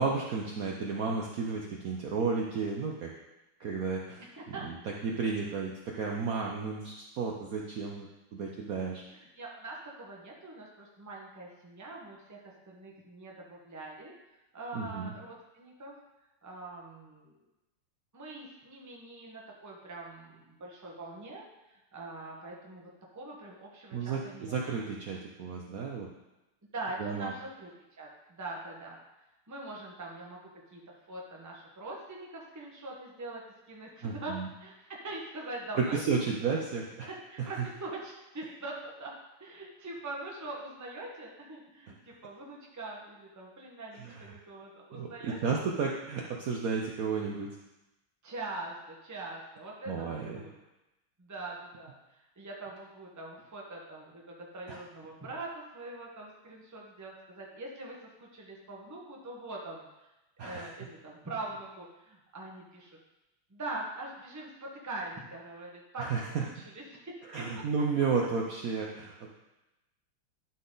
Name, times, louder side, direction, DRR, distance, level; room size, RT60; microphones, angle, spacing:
voice 1, 0.0-3.1 3.6-4.2 4.5-4.8 5.0-9.0 14.7-15.1 23.9-26.1 27.0-27.3 34.0-34.5 35.7-37.1 37.4-37.6 44.0-44.3 44.9-47.5 49.9-50.4 54.7-54.8 60.4-60.7 66.0-66.4 67.3-69.3, right 5 dB, 85° right, -1 dB, 0.7 m, -32 dB
voice 2, 4.2-4.7 9.1-14.1 14.5-16.0 16.4-17.4 18.1-24.8 26.7-27.7 28.0-29.0 29.5-30.4 30.7-30.8 31.1-36.2 37.3-39.1 39.4-45.4 48.2-50.5 51.2-59.9 60.4-63.0 63.5-66.1 66.4-67.4, right 2 dB, 15° right, -2 dB, 0.5 m, -43 dB
11.5 x 4.0 x 3.9 m, 0.98 s
omnidirectional pair, 2.4 m